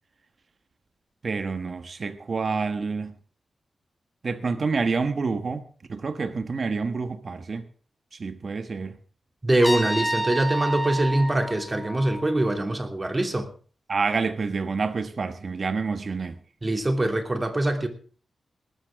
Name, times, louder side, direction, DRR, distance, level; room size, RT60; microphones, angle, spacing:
voice 1, 1.2-3.2 4.2-7.7 8.2-9.0 13.9-16.4, right 4 dB, 50° right, 1.4 m, -28 dB
voice 2, 9.4-13.5 16.6-17.9, right 1 dB, 25° right, 2.9 m, -23 dB
Trumpet, 9.6-12.5, right 1 dB, 5° left, 4.4 m, -30 dB
19.0 x 13.5 x 3.7 m
wide cardioid pair, 90°, 0 cm